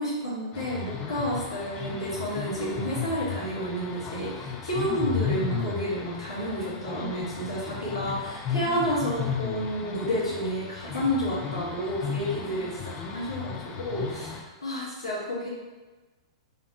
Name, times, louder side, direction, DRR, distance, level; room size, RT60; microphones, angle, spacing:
voice 1, 0.0-15.5, equal, 90° left, -8 dB, 1.1 m, -30 dB
sound 1, 0.5-14.4, left 7 dB, 30° left, 0.4 m, -35 dB
2.8 x 2.5 x 3.6 m, 1.2 s
figure-of-eight pair, 105°, 3 cm